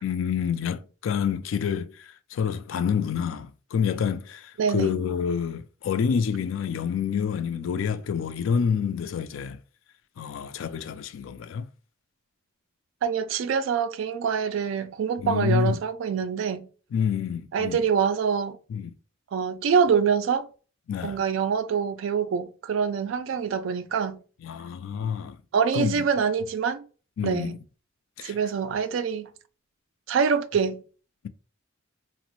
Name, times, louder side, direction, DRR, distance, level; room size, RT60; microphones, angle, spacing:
voice 1, 0.0-9.6 10.2-11.7 15.2-15.8 16.9-17.8 18.7-18.9 20.9-21.2 24.4-25.4 25.7-26.1 27.2-27.6 28.2-28.3, left 7 dB, 75° left, 0.3 m, -28 dB
voice 2, 4.6-5.0 13.0-16.7 17.5-18.6 19.3-20.5 21.0-24.2 25.5-26.9 27.2-27.6 28.2-29.3 30.1-30.8, right 6 dB, 70° right, 0.3 m, -25 dB
2.9 x 2.1 x 2.9 m
head